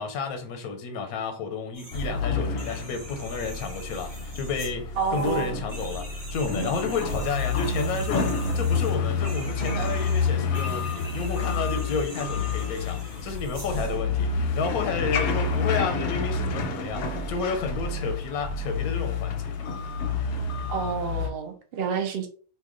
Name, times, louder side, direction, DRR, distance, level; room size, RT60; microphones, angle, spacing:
voice 1, 0.0-19.5, left 4 dB, 85° left, 1.1 m, -31 dB
sound 1, 1.7-2.1 2.5-14.0, right 1 dB, 35° right, 1.1 m, -44 dB
sound 2, 1.9-21.3, left 4 dB, 65° left, 0.7 m, -29 dB
voice 2, 5.0-5.6 20.7-22.3, right 6 dB, 60° right, 0.6 m, -29 dB
2.7 x 2.1 x 3.6 m
omnidirectional pair, 1.5 m